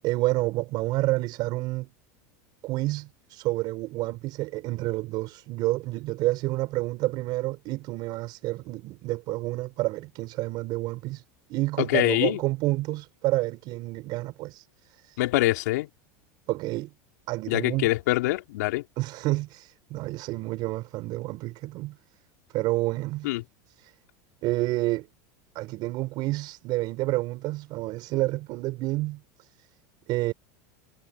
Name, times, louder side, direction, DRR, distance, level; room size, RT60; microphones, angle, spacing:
voice 1, 0.0-1.9 2.6-11.2 11.5-15.2 16.5-16.9 17.3-17.9 19.0-22.0 22.5-23.3 23.8-23.9 24.4-25.1 25.5-29.5 30.1-30.3, right 19 dB, 50° right, 5.9 m, -29 dB
voice 2, 11.8-12.4 15.2-15.9 17.5-18.8 23.2-23.4, left 18 dB, 80° left, 4.0 m, -24 dB
supercardioid pair, 130°, 9 cm